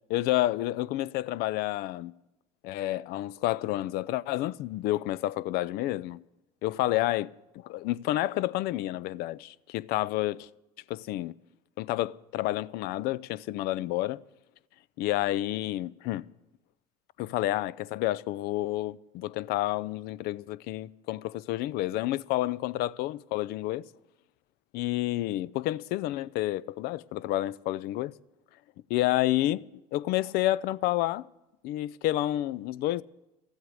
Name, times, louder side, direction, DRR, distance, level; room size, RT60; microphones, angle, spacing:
voice 1, 0.1-2.1 2.6-6.2 6.6-10.5 10.9-11.4 11.8-14.2 15.0-16.2 17.2-23.9 24.7-28.1 28.9-29.6 29.9-31.3 31.6-33.0, left 15 dB, 60° left, 0.4 m, -29 dB
14.0 x 8.0 x 9.6 m
supercardioid pair, 100°, 18 cm